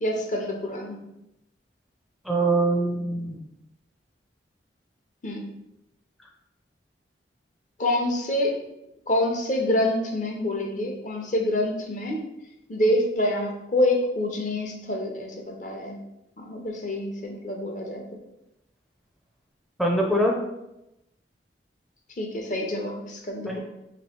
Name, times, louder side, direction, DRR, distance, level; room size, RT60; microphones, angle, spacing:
voice 1, 0.0-1.0 5.2-5.5 7.8-8.6 9.1-12.2 12.7-16.0 16.4-18.2 22.2-23.6, left 1 dB, 45° left, 1 dB, 0.7 m, -26 dB
voice 2, 2.2-3.4 19.8-20.4 23.5-23.6, right 1 dB, ahead, -1 dB, 0.5 m, -23 dB
3.0 x 3.0 x 4.4 m, 0.87 s
head